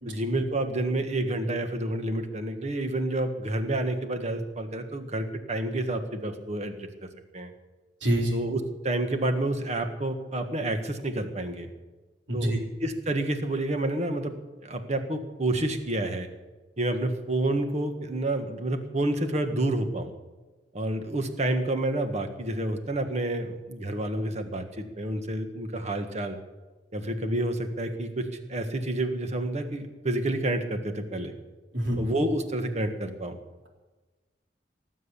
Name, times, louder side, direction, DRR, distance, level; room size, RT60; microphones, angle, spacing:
voice 1, 0.0-6.7 7.3-7.5 8.3-11.7 12.3-12.5 12.8-14.4 14.6-16.3 16.8-20.1 20.7-26.4 26.9-31.4 32.0-33.4, right 1 dB, 40° right, 6 dB, 1.6 m, -29 dB
voice 2, 8.0-8.4 12.3-12.6 31.7-32.0, right 1 dB, 90° right, 0 dB, 3.8 m, -26 dB
18.5 x 7.9 x 8.5 m, 1.2 s
head